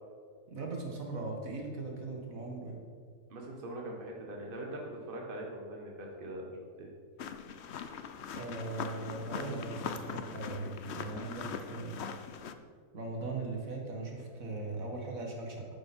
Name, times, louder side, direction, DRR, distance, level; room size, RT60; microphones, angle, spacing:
voice 1, 0.5-2.8 8.3-12.0 12.9-15.7, right 3 dB, 60° right, 0 dB, 2.2 m, -39 dB
voice 2, 3.3-6.9, right 1 dB, 35° right, -1 dB, 1.7 m, -42 dB
sound 1, 7.2-12.5, left 6 dB, 55° left, 0.8 m, -41 dB
12.5 x 9.4 x 4.4 m, 2.1 s
omnidirectional pair, 1.6 m